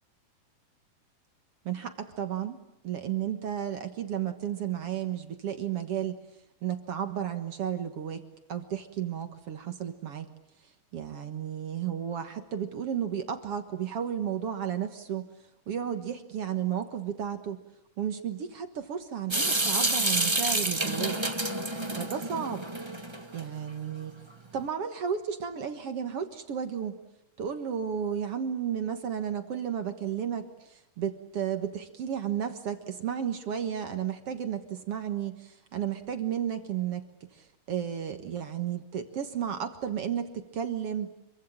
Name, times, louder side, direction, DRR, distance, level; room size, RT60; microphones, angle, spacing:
voice 1, 1.7-6.2 6.6-8.2 8.5-10.3 10.9-15.3 15.7-17.6 18.0-21.2 22.0-22.7 23.3-24.2 24.5-27.0 27.4-41.1, right 8 dB, 55° right, 7 dB, 2.1 m, -33 dB
Water tap faucet / Sink (filling or washing) / Drip, 19.3-23.4, right 2 dB, 30° right, 0.5 m, -28 dB
26.5 x 23.5 x 8.7 m, 0.86 s
omnidirectional pair, 3.7 m